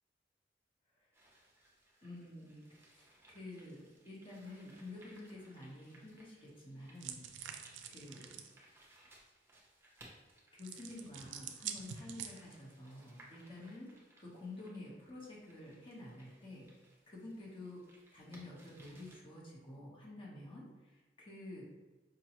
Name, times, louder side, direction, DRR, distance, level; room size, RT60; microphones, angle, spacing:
sound 1, 1.1-19.1, right 1 dB, 15° right, 0.6 m, -64 dB
voice 1, 2.0-7.2 7.9-8.4 10.5-16.7 17.1-17.8 18.1-21.6, left 1 dB, 30° left, -4 dB, 1.0 m, -50 dB
sound 2, 7.0-8.5 10.6-12.7, right 8 dB, 85° right, 0.4 m, -46 dB
5.0 x 2.3 x 2.9 m, 1.2 s
head